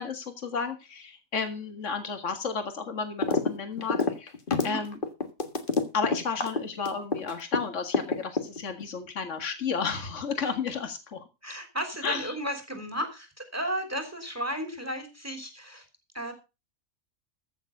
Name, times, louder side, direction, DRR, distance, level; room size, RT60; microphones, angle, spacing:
voice 1, 0.0-4.3 4.6-5.0 5.9-11.2 12.0-12.3, left 5 dB, 65° left, 7 dB, 2.1 m, -32 dB
sound 1, 3.2-3.5 3.8-7.6 7.9-8.8, left 3 dB, 40° left, 1.8 m, -26 dB
voice 2, 11.4-15.8 16.1-16.3, equal, 10° right, 7 dB, 3.4 m, -34 dB
15.0 x 7.2 x 5.2 m, 0.29 s
omnidirectional pair, 1.4 m